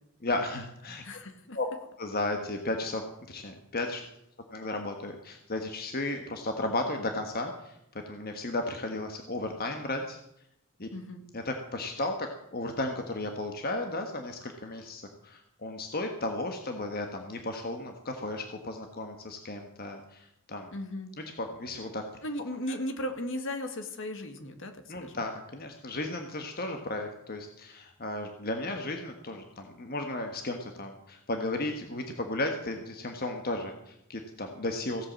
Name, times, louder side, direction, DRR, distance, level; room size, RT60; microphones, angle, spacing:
voice 1, 0.2-1.0 1.5-1.7 2.0-4.0 4.5-7.8 8.1-10.2 10.8-10.9 11.3-20.7 21.4-22.0 22.7-22.8 24.9-35.1, left 2 dB, 45° left, 4 dB, 1.4 m, -34 dB
voice 2, 1.0-1.6 10.9-11.2 20.7-21.1 22.2-25.2, left 1 dB, 60° left, 6 dB, 1.8 m, -36 dB
16.5 x 8.5 x 7.5 m, 0.82 s
head